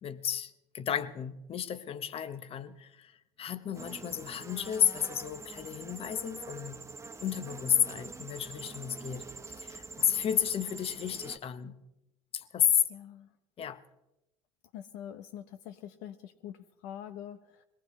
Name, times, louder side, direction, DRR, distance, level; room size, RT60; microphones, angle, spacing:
voice 1, 0.0-6.8 7.2-11.8 12.3-12.8 13.6-13.8, left 9 dB, 45° left, 1.1 m, -32 dB
sound 1, 3.7-11.4, right 4 dB, 20° right, 1.2 m, -45 dB
voice 2, 12.9-13.3 14.7-17.6, left 10 dB, 75° left, 0.8 m, -45 dB
22.0 x 18.0 x 3.2 m
hypercardioid pair, 75°, 14 cm